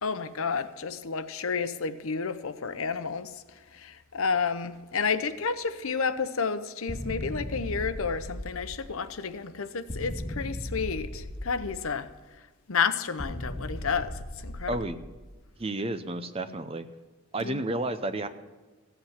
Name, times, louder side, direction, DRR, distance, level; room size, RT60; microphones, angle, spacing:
voice 1, 0.0-12.1 12.7-14.8 17.4-17.7, left 5 dB, 70° left, 0.8 m, -31 dB
sound 1, 6.9-9.2 9.9-12.2 13.2-15.5, left 1 dB, 25° left, 0.8 m, -37 dB
voice 2, 14.7-15.0 15.6-16.9 17.3-18.3, right 2 dB, 25° right, 0.6 m, -31 dB
15.5 x 8.1 x 5.8 m
head